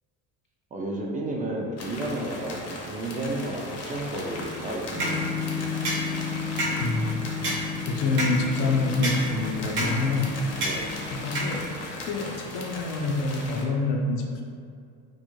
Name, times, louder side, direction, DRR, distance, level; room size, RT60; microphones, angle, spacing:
voice 1, 0.7-5.2 10.6-10.9, right 1 dB, 20° right, -2 dB, 0.3 m, -32 dB
sound 1, 1.8-13.6, left 2 dB, 35° left, 0.6 m, -38 dB
sound 2, 4.9-12.0, left 2 dB, 75° right, 0.9 m, -30 dB
voice 2, 6.8-7.3 7.9-10.3 11.1-14.4, left 3 dB, 80° left, 0 dB, 0.5 m, -27 dB
2.3 x 2.1 x 3.0 m, 2.3 s
supercardioid pair, 75°, 44 cm